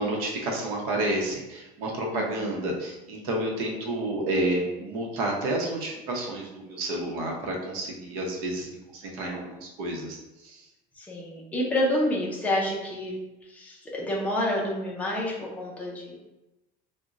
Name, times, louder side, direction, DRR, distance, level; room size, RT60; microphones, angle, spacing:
voice 1, 0.0-10.7, right 1 dB, 75° right, 0 dB, 0.8 m, -30 dB
voice 2, 2.1-2.7 11.0-13.2 13.5-16.2, left 1 dB, 10° left, -3 dB, 0.4 m, -29 dB
2.4 x 2.1 x 3.9 m, 1.0 s
cardioid pair, 180°, 18 cm